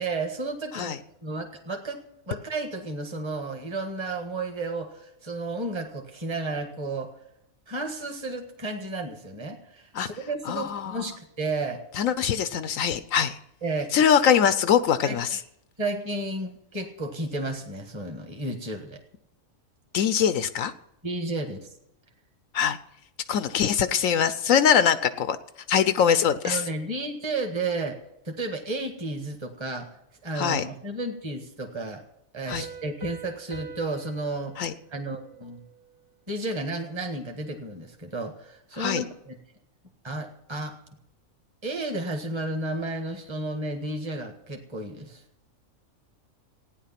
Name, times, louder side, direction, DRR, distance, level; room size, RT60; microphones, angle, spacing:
voice 1, 0.0-2.0 2.3-7.1 7.7-11.8 13.6-13.9 15.0-15.4 15.8-19.0 21.0-21.7 26.4-28.0 28.2-29.9 30.2-32.0 32.3-35.6 36.3-39.3 40.0-40.8 41.6-45.2, right 2 dB, 20° right, 4 dB, 1.6 m, -32 dB
voice 2, 10.5-11.0 12.0-13.4 13.9-15.4 19.9-20.7 22.5-22.8 23.3-25.4 25.7-26.6 30.3-30.6 32.5-32.6 34.6-34.7 38.8-39.0, left 8 dB, 75° left, 13 dB, 1.0 m, -23 dB
Piano, 32.5-35.9, right 6 dB, 60° right, 2.5 m, -44 dB
15.5 x 9.9 x 5.8 m, 0.80 s
omnidirectional pair, 1.4 m